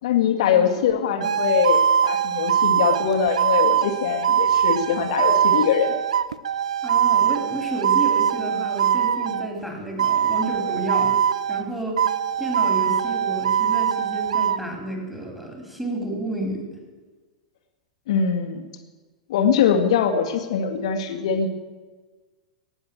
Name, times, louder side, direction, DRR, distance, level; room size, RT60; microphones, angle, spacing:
voice 1, 0.0-5.9 18.1-18.7 19.3-21.5, left 7 dB, 60° left, 4 dB, 2.0 m, -22 dB
sound 1, 1.2-9.5 10.0-11.7 12.0-14.6, right 9 dB, 70° right, 0.5 m, -22 dB
voice 2, 6.8-11.2 11.5-12.0 12.4-16.6, right 1 dB, 5° right, 2 dB, 4.5 m, -31 dB
18.0 x 7.9 x 8.9 m, 1.3 s
figure-of-eight pair, 95°, 4 cm